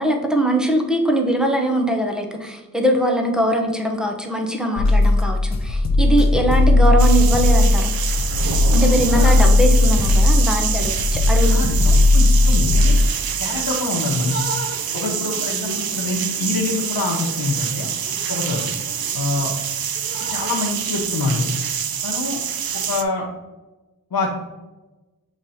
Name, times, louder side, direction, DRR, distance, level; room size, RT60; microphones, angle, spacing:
voice 1, 0.0-8.0 8.7-11.9, right 1 dB, ahead, 2 dB, 0.9 m, -21 dB
sound 1, 4.8-13.1, left 2 dB, 50° left, 0.7 m, -16 dB
sound 2, 7.0-23.0, right 8 dB, 75° right, 0.6 m, -26 dB
voice 2, 9.1-9.5 11.5-13.0 13.4-14.4 14.9-17.9 18.3-18.7 19.1-19.5 20.1-21.4 22.0-22.4 22.7-23.3 24.1-24.3, left 3 dB, 80° left, -4 dB, 1.0 m, -25 dB
Drip, 13.6-13.8 14.1-19.5 20.0-20.7, right 1 dB, 30° right, 0.7 m, -37 dB
7.1 x 3.3 x 4.2 m, 1.1 s
wide cardioid pair, 100°, 36 cm